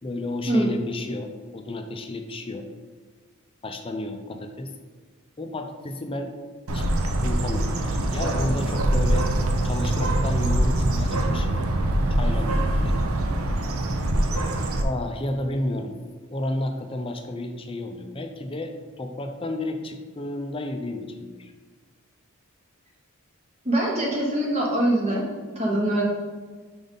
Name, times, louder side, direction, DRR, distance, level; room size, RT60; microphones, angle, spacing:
voice 1, 0.0-2.7 3.6-4.7 5.4-6.3 6.7-6.8 7.2-9.3 9.6-11.6 12.2-13.0 14.8-15.9 16.3-21.5, left 1 dB, 25° left, 6 dB, 0.5 m, -31 dB
Bird, 6.7-14.8, right 1 dB, 70° right, 0.6 m, -23 dB
voice 2, 23.6-25.2 25.5-26.0, right 1 dB, 30° right, -3 dB, 0.9 m, -23 dB
5.2 x 3.9 x 5.2 m, 1.4 s
head